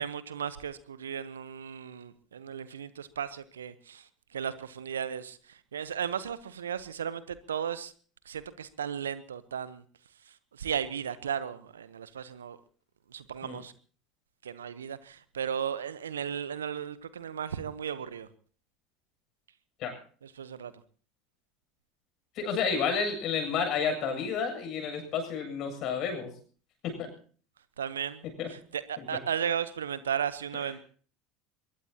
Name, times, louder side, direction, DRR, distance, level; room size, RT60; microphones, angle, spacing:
voice 1, 0.0-7.9 8.3-9.8 10.5-12.6 13.1-13.7 14.4-18.3 20.2-20.7 27.8-30.8, right 8 dB, 80° right, 16 dB, 0.9 m, -35 dB
voice 2, 22.4-26.3 26.8-27.1 28.4-28.5 29.0-29.1, left 6 dB, 50° left, 5 dB, 7.6 m, -30 dB
23.0 x 21.0 x 2.9 m, 0.42 s
figure-of-eight pair, 70°, 0 cm